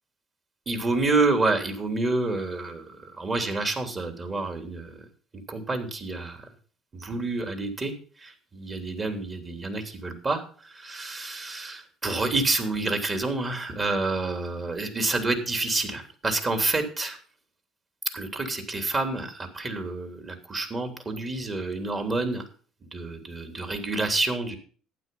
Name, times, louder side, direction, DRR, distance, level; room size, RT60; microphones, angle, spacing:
voice 1, 0.7-2.8 3.2-5.0 5.5-6.4 7.0-7.9 8.2-10.4 10.8-17.2 18.1-22.4 22.9-24.6, right 3 dB, 30° right, 5 dB, 3.3 m, -28 dB
12.0 x 9.2 x 5.6 m, 0.43 s
supercardioid pair, 80°, 0 cm